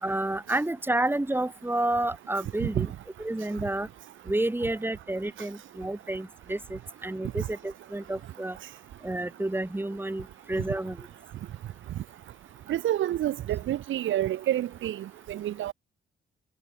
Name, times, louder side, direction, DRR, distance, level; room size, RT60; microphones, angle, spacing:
voice 1, 0.0-2.9 3.2-3.9 4.3-8.6 9.0-11.0, right 1 dB, 10° right, 4.8 m, -30 dB
voice 2, 12.7-15.7, right 12 dB, 75° right, 4.1 m, -28 dB
cardioid pair, 90°, 20 cm